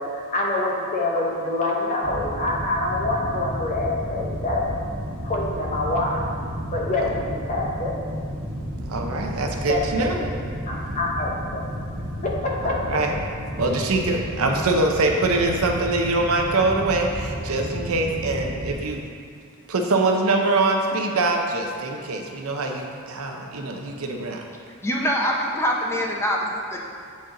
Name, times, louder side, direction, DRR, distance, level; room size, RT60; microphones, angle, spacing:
voice 1, 0.0-4.7 5.2-6.2 6.7-8.0 9.6-10.3 10.7-11.7 12.2-13.0 23.6-23.7, left 2 dB, 35° left, -2 dB, 0.9 m, -26 dB
sound 1, 2.0-18.7, equal, 85° right, 1.2 m, -32 dB
voice 2, 8.9-10.2 12.8-13.1 13.6-17.1 17.5-19.0 19.7-24.4, right 2 dB, 70° right, 2 dB, 0.7 m, -23 dB
voice 3, 24.8-27.0, equal, 10° left, -1 dB, 0.6 m, -24 dB
8.0 x 4.2 x 3.8 m, 2.4 s
head